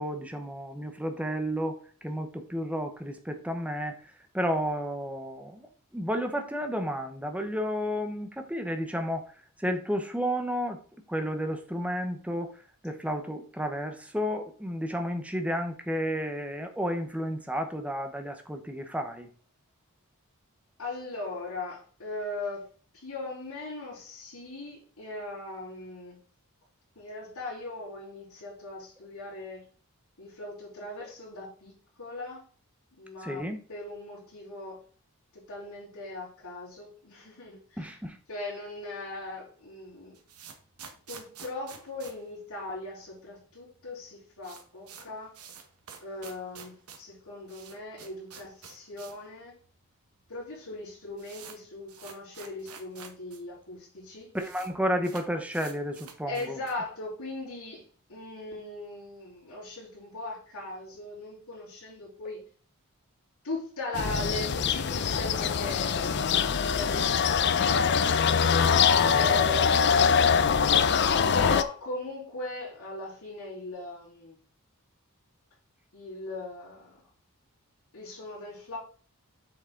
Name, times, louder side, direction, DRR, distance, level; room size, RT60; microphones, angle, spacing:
voice 1, 0.0-5.7 5.9-9.3 9.6-10.8 11.1-12.6 12.8-19.3 33.2-33.6 37.8-38.2 54.3-56.6 68.6-69.2, equal, 5° right, 6 dB, 0.9 m, -32 dB
voice 2, 20.8-22.7 22.9-26.2 27.0-29.6 30.2-32.4 32.9-33.4 33.7-34.8 35.3-37.9 38.3-40.2 41.1-45.3 46.0-49.6 50.3-54.3 56.3-62.4 63.4-66.3 66.7-68.1 69.1-70.7 71.3-74.4 75.9-76.9 77.9-78.8, left 2 dB, 75° left, -10 dB, 4.1 m, -39 dB
sound 1, 39.9-43.1 43.4-43.5 43.7-43.8 44.1-49.3 49.6-49.7 50.4-50.5 50.7-53.4 53.7-53.8 54.0-54.7 55.0-56.9, right 6 dB, 80° right, 1.3 m, -48 dB
sound 2, 63.9-71.6, left 6 dB, 50° left, 0.5 m, -23 dB
7.7 x 6.2 x 3.8 m, 0.42 s
head